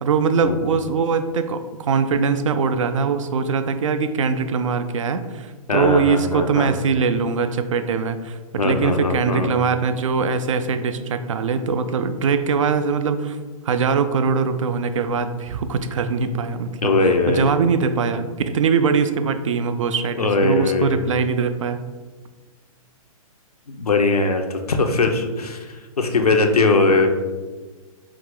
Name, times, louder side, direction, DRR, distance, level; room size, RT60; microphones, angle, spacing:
voice 1, 0.0-13.4 13.7-16.9 17.3-21.8, right 5 dB, 55° right, 10 dB, 0.4 m, -22 dB
voice 2, 5.7-6.7 8.6-9.5 16.8-17.5 20.2-21.0 23.7-27.1, left 3 dB, 85° left, 4 dB, 0.6 m, -20 dB
4.7 x 2.4 x 3.7 m, 1.3 s
figure-of-eight pair, 120°, 19 cm